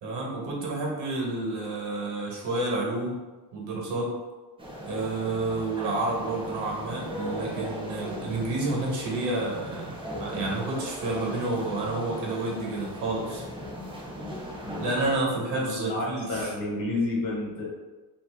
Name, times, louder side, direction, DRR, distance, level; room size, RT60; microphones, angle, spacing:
voice 1, 0.0-3.2 3.5-4.1 4.8-9.9 10.2-13.4 14.8-16.5, right 2 dB, 75° right, -1 dB, 1.1 m, -30 dB
sound 1, 4.6-15.2, equal, 15° right, 0.5 m, -38 dB
voice 2, 15.6-17.7, left 2 dB, 50° left, -3 dB, 1.1 m, -30 dB
2.9 x 2.6 x 3.3 m, 1.2 s
cardioid pair, 175°, 42 cm